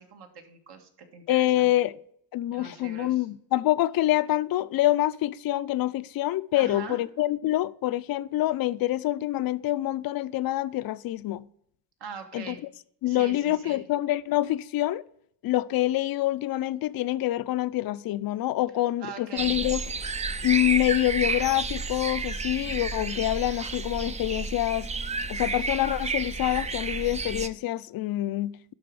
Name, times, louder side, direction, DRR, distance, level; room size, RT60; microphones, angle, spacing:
voice 1, 0.0-1.7 2.5-3.3 6.5-7.0 12.0-12.6 13.1-13.9 19.0-19.6, right 6 dB, 65° right, 1.7 m, -42 dB
voice 2, 1.3-1.9 2.3-11.4 12.3-12.5 13.0-15.0 15.4-19.8 20.4-24.9 25.3-28.7, left 15 dB, 55° left, 0.5 m, -26 dB
sound 1, 19.4-27.5, right 4 dB, 15° right, 0.3 m, -31 dB
11.5 x 4.2 x 4.7 m
cardioid pair, 115°, 44 cm